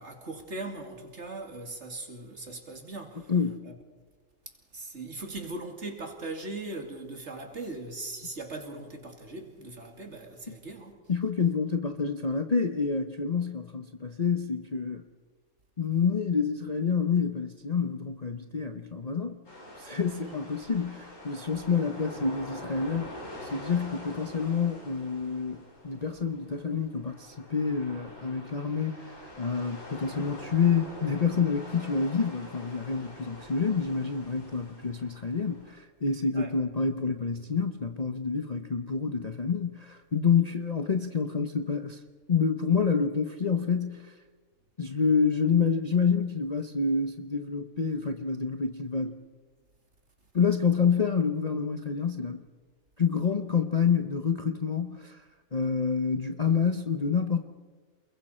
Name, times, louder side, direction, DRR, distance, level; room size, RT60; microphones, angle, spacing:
voice 1, 0.0-3.3 3.6-3.7 4.7-10.9 20.1-20.4 36.3-36.5, right 2 dB, 50° right, 2.7 m, -39 dB
voice 2, 3.3-3.6 11.1-15.0 15.8-19.4 19.8-23.1 23.4-42.0 42.3-44.1 44.8-49.2 50.3-52.4 53.0-55.2 55.5-57.4, left 5 dB, 35° left, 0.8 m, -28 dB
sound 1, 19.4-35.7, left 1 dB, 60° left, 5.0 m, -45 dB
28.5 x 21.5 x 4.4 m
omnidirectional pair, 1.5 m